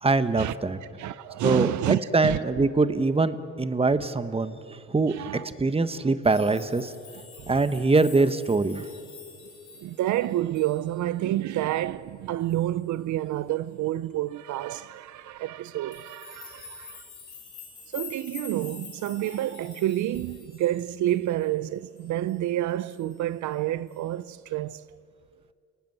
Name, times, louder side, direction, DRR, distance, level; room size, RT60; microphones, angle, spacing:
voice 1, 0.0-0.8 1.4-5.1 5.4-6.9 7.5-8.8, right 3 dB, 20° right, 1.2 m, -23 dB
voice 2, 1.0-2.7 5.1-5.5 7.4-7.5 9.8-17.0 17.9-24.8, right 13 dB, 70° right, 0.6 m, -29 dB
sound 1, 6.2-11.2 11.5-11.8 12.5-12.7 15.9-21.6 22.0-22.5 22.9-23.3 23.9-24.0, left 6 dB, 75° left, 6.6 m, -47 dB
29.5 x 18.5 x 7.9 m
cardioid pair, 90°, 30 cm